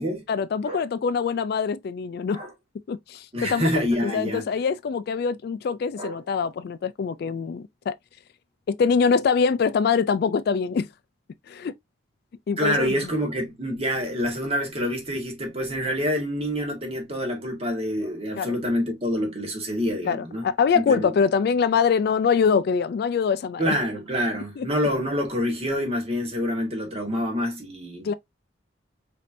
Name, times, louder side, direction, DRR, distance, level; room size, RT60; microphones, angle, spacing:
voice 1, 0.3-2.4 2.9-8.0 8.7-10.9 11.5-11.7 12.5-12.9 18.4-18.6 20.0-23.8 24.6-24.7 28.0-28.1, left 6 dB, 55° left, 0.3 m, -24 dB
voice 2, 3.3-4.5 6.0-6.2 12.6-20.4 20.7-21.1 23.6-28.2, equal, 35° right, 1.5 m, -27 dB
5.2 x 2.8 x 2.5 m
head